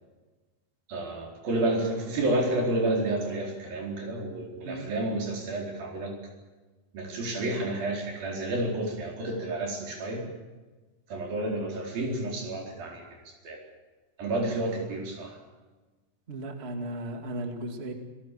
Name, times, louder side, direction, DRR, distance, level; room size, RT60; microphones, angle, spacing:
voice 1, 0.9-6.1 6.9-10.3 11.1-13.6 14.2-15.4, right 2 dB, 75° right, 0 dB, 6.1 m, -30 dB
voice 2, 16.3-17.9, right 1 dB, 20° right, 5 dB, 1.9 m, -35 dB
27.0 x 18.0 x 7.5 m, 1.2 s
omnidirectional pair, 4.1 m